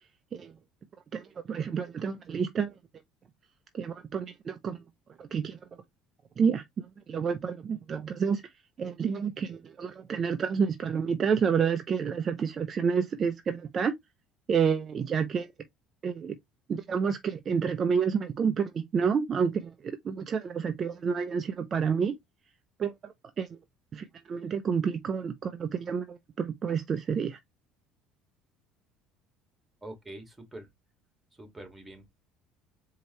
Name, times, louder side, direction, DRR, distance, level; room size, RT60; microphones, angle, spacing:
voice 1, 1.1-2.7 3.7-4.8 5.2-5.6 6.4-6.6 7.1-8.4 8.8-13.9 14.5-15.5 16.0-16.4 16.7-22.1 22.8-23.6 23.9-27.4, right 6 dB, 40° right, 0.5 m, -29 dB
voice 2, 29.8-30.7 31.3-32.1, right 1 dB, 10° right, 1.8 m, -45 dB
4.4 x 2.8 x 2.9 m
supercardioid pair, 105°, 0 cm